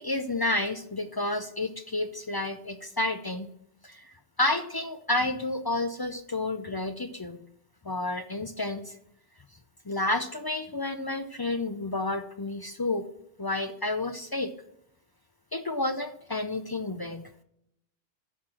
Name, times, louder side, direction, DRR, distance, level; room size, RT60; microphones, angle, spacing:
voice 1, 0.0-3.5 3.8-7.4 7.8-8.9 9.9-13.1 13.4-14.5 15.5-17.2, left 2 dB, 35° left, 8 dB, 0.4 m, -30 dB
10.5 x 4.6 x 7.4 m, 0.75 s
omnidirectional pair, 1.0 m